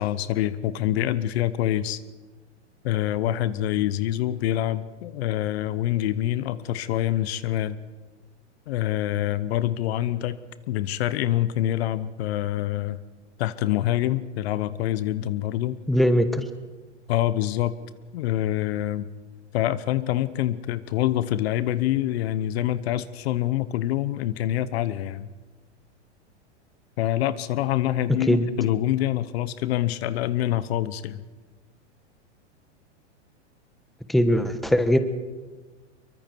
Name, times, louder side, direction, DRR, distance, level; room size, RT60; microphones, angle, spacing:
voice 1, 0.0-2.0 2.8-7.8 8.7-10.4 10.7-13.0 13.4-15.8 17.1-17.7 18.1-19.1 19.5-25.3 27.0-31.2, left 13 dB, 60° left, 15 dB, 1.0 m, -26 dB
voice 2, 15.9-16.4 28.3-28.5 34.1-35.0, equal, ahead, 9 dB, 1.2 m, -20 dB
24.0 x 23.5 x 4.6 m, 1.3 s
hypercardioid pair, 115°, 35 cm